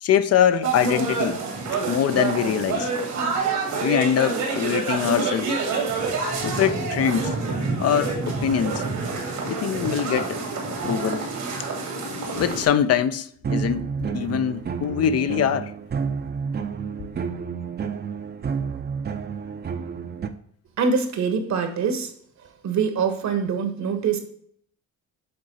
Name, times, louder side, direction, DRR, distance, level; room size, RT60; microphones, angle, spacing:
voice 1, 0.0-1.4 1.8-2.9 3.2-3.3 3.8-5.6 6.4-7.3 7.8-8.8 9.5-10.4 10.8-11.3 12.0-15.7, left 9 dB, 55° left, 0.5 m, -23 dB
sound 1, 0.6-12.7, right 4 dB, 85° right, 2.2 m, -27 dB
sound 2, 13.4-20.3, right 6 dB, 35° right, 0.6 m, -30 dB
voice 2, 20.8-22.1 22.6-24.2, right 5 dB, 65° right, 1.3 m, -24 dB
7.7 x 3.7 x 4.2 m
cardioid pair, 90°, 30 cm